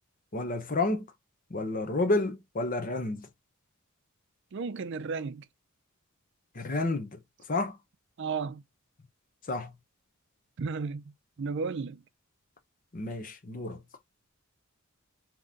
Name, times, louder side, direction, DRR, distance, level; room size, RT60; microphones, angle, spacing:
voice 1, 0.3-1.1 1.5-3.3 6.5-7.2 7.5-7.8 9.5-9.7 12.9-13.8, left 2 dB, 40° left, 0.8 m, -30 dB
voice 2, 4.5-5.5 8.2-8.6 10.6-11.1 11.4-12.0, right 4 dB, 60° right, 0.5 m, -33 dB
3.9 x 3.0 x 3.7 m
head